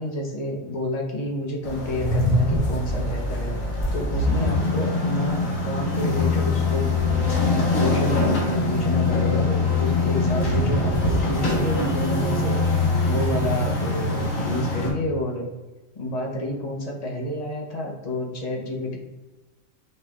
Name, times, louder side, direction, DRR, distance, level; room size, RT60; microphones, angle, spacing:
voice 1, 0.0-3.6 3.9-6.9 7.5-15.4 15.9-19.0, left 1 dB, 35° left, -1 dB, 0.9 m, -29 dB
sound 1, 1.6-14.9, left 2 dB, 75° left, 1.6 m, -23 dB
5.5 x 2.5 x 3.5 m, 1.1 s
omnidirectional pair, 1.4 m